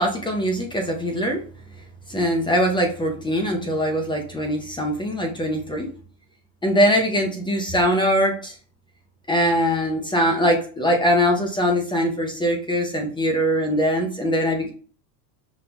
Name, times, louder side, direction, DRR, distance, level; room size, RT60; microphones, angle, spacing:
voice 1, 0.0-1.4 2.1-5.9 6.6-8.5 9.3-14.7, equal, 10° left, 2 dB, 0.7 m, -22 dB
6.1 x 2.5 x 2.3 m, 0.40 s
supercardioid pair, 110°, 49 cm